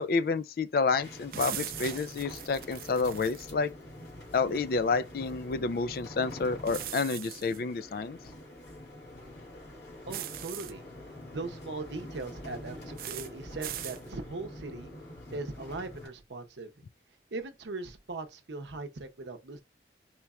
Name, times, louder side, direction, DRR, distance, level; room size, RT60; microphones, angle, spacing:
voice 1, 0.0-3.7 4.3-8.2, left 4 dB, 55° left, 0.3 m, -29 dB
sound 1, 1.0-16.1, left 1 dB, 85° left, 2.2 m, -46 dB
sound 2, 1.3-3.5 6.7-7.6 10.1-10.7 13.0-13.3 13.6-14.0, right 12 dB, 50° right, 0.4 m, -39 dB
voice 2, 10.1-10.8 11.3-14.9 15.3-16.7 17.3-19.6, right 3 dB, 75° right, 0.7 m, -39 dB
4.4 x 2.4 x 4.0 m
head